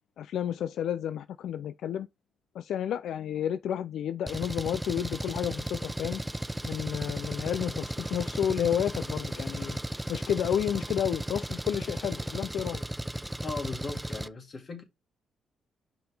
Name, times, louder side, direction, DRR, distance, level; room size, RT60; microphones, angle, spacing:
voice 1, 0.2-2.1 2.5-6.2 6.6-9.8 10.1-12.8, left 9 dB, 75° left, 0.3 m, -31 dB
Engine, 4.3-14.3, right 1 dB, 10° right, 0.4 m, -35 dB
voice 2, 13.4-14.8, left 3 dB, 45° left, 2.2 m, -38 dB
5.7 x 5.3 x 3.3 m
cardioid pair, 85°, 0 cm